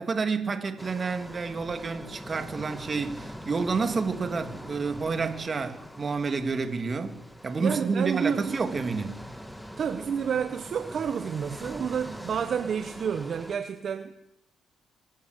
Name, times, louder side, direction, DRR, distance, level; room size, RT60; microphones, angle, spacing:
voice 1, 0.0-7.2 7.4-9.2, right 4 dB, 35° right, 7 dB, 3.0 m, -29 dB
sound 1, 0.8-13.6, equal, ahead, 2.0 m, -43 dB
voice 2, 7.6-8.5 9.8-14.1, right 7 dB, 55° right, 8 dB, 1.2 m, -29 dB
25.5 x 13.0 x 8.4 m, 0.85 s
cardioid pair, 90°, 0 cm